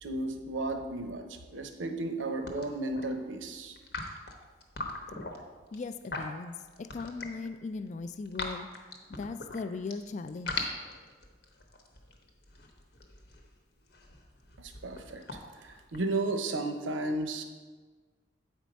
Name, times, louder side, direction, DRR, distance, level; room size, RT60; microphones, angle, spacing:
voice 1, 0.0-3.8 14.6-15.2 15.6-17.4, right 2 dB, 85° right, 6 dB, 0.7 m, -34 dB
sound 1, 2.0-2.2 2.5-3.1 3.8-7.5 7.9-9.9 10.3-16.4, left 3 dB, 60° left, 0.9 m, -40 dB
voice 2, 5.7-8.7 9.1-10.7, left 4 dB, 40° left, 12 dB, 0.3 m, -38 dB
8.2 x 4.5 x 5.2 m, 1.4 s
head